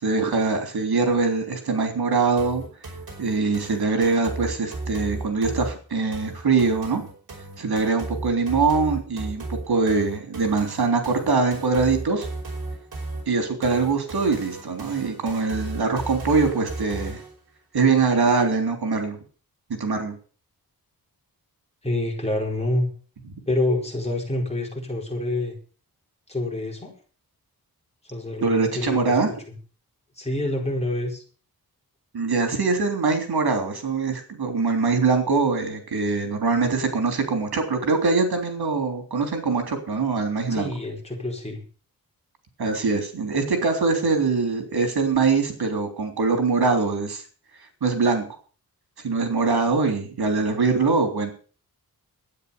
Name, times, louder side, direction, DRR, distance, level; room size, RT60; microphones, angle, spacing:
voice 1, 0.0-2.6 3.2-7.0 7.6-12.3 13.3-17.2 17.7-19.2 19.8-20.2 28.4-29.3 32.1-40.7 42.6-47.2 47.8-48.3 49.0-51.3, right 4 dB, 90° right, 5 dB, 3.4 m, -23 dB
sound 1, 2.4-17.4, right 2 dB, 70° right, 5.2 m, -35 dB
voice 2, 21.8-22.9 23.5-25.6 26.3-26.9 28.0-29.2 30.2-31.2 40.5-41.6, left 1 dB, 15° left, -1 dB, 4.6 m, -27 dB
12.5 x 9.7 x 6.9 m, 0.40 s
wide cardioid pair, 150°, 37 cm